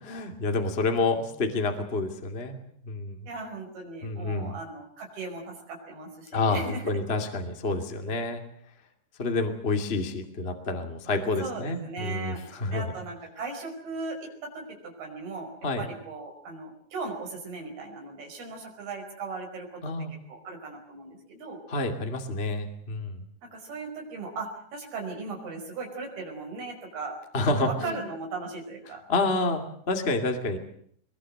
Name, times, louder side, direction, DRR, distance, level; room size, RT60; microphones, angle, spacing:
voice 1, 0.0-2.6 2.8-3.2 4.0-4.6 6.3-8.4 9.2-12.8 15.6-15.8 19.8-20.1 21.7-23.2 27.3-28.0 29.1-30.6, left 3 dB, 20° left, 5 dB, 1.7 m, -28 dB
voice 2, 3.3-6.9 11.4-12.4 12.7-15.5 15.8-19.8 20.1-21.6 23.4-29.0, right 3 dB, 60° right, 2 dB, 7.1 m, -38 dB
23.0 x 22.0 x 7.8 m, 0.63 s
omnidirectional pair, 5.2 m